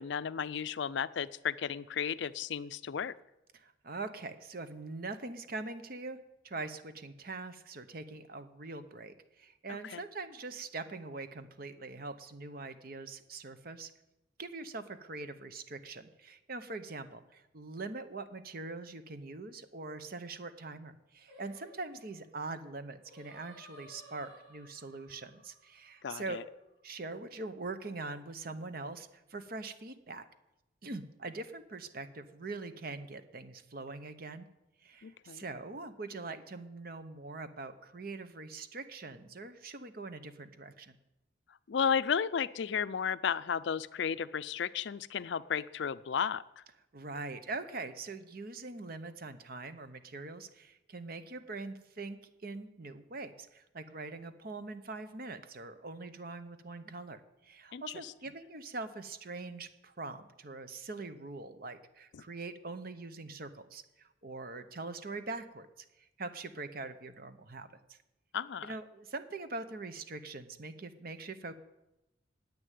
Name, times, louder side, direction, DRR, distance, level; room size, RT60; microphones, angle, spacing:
voice 1, 0.0-3.1 9.8-10.0 26.0-26.4 35.0-35.4 41.7-46.6 57.7-57.8 62.1-62.2 68.3-68.7, left 7 dB, 65° left, 15 dB, 0.4 m, -33 dB
voice 2, 3.5-6.2 6.4-13.9 14.4-26.4 26.8-30.3 30.8-34.5 34.8-41.0 46.9-65.8 66.2-67.7 68.6-71.5, right 3 dB, 50° right, 11 dB, 0.9 m, -43 dB
Singing, 21.3-26.6, equal, 75° right, 5.5 m, -57 dB
10.0 x 8.6 x 9.3 m, 0.94 s
head